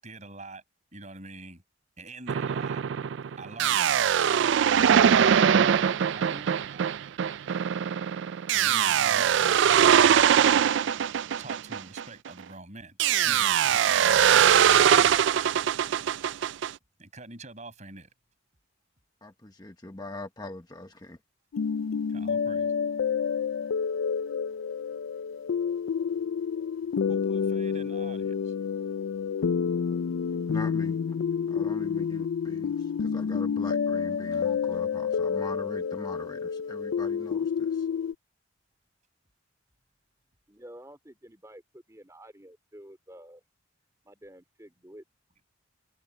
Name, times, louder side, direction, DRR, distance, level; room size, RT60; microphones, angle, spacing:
voice 1, 0.0-0.6 0.9-1.6 2.0-2.8 3.4-4.1 4.8-6.8 8.5-9.6 10.3-10.7 11.4-13.0 13.2-15.3 17.0-18.1 22.1-22.7 27.1-28.5, right 3 dB, 35° right, 6.9 m, -45 dB
sound 1, 2.3-12.4 13.0-16.7, right 8 dB, 55° right, 0.3 m, -22 dB
voice 2, 19.2-21.2 30.5-31.0 31.5-37.9, left 2 dB, 20° left, 0.9 m, -41 dB
sound 2, 21.5-38.1, left 6 dB, 70° left, 0.4 m, -29 dB
voice 3, 40.5-43.4 44.0-45.0, right 1 dB, 15° right, 3.2 m, -49 dB
head